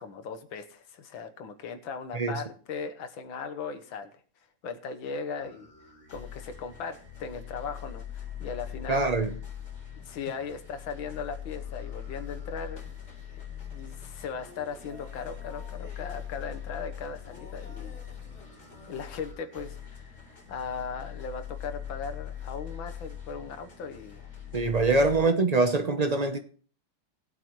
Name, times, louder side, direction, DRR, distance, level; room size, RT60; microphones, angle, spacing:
voice 1, 0.0-4.1 4.6-5.7 6.1-9.1 10.0-13.0 13.3-13.4 13.7-18.0 18.9-20.2 20.5-24.3, left 5 dB, 85° left, 1.9 m, -38 dB
sound 1, 5.4-25.2, left 9 dB, 60° left, 4.5 m, -42 dB
voice 2, 8.9-9.3 24.5-26.4, right 3 dB, 50° right, 0.4 m, -24 dB
20.5 x 8.1 x 3.1 m
omnidirectional pair, 2.1 m